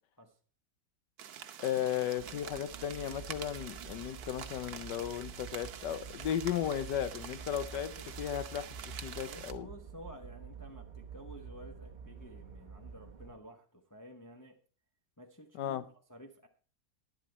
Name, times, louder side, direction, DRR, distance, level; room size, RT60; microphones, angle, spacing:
sound 1, 1.2-9.5, right 9 dB, 70° right, 1.3 m, -47 dB
voice 1, 1.6-7.9 8.2-9.7 15.5-15.8, left 10 dB, 85° left, 14 dB, 1.4 m, -35 dB
sound 2, 2.2-13.4, right 5 dB, 35° right, 0.9 m, -48 dB
voice 2, 9.2-14.6 15.2-15.8 16.1-16.5, equal, 15° left, 3 dB, 0.9 m, -52 dB
11.5 x 10.5 x 4.3 m, 0.39 s
omnidirectional pair, 1.8 m